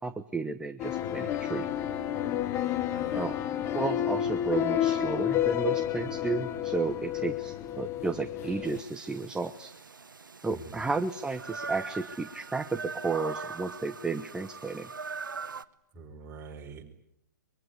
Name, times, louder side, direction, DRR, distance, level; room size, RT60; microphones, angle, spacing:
voice 1, 0.0-1.7 3.1-3.4 3.7-9.7 10.4-14.9, right 4 dB, 5° right, 8 dB, 0.9 m, -33 dB
sound 1, 0.8-8.8, left 11 dB, 25° left, 1.3 m, -30 dB
voice 2, 2.8-3.3 10.5-10.9 15.9-16.8, right 4 dB, 25° right, 2 dB, 5.0 m, -45 dB
sound 2, 8.6-15.7, right 4 dB, 85° right, 1.1 m, -41 dB
23.5 x 23.0 x 9.7 m, 0.75 s
figure-of-eight pair, 125°, 11 cm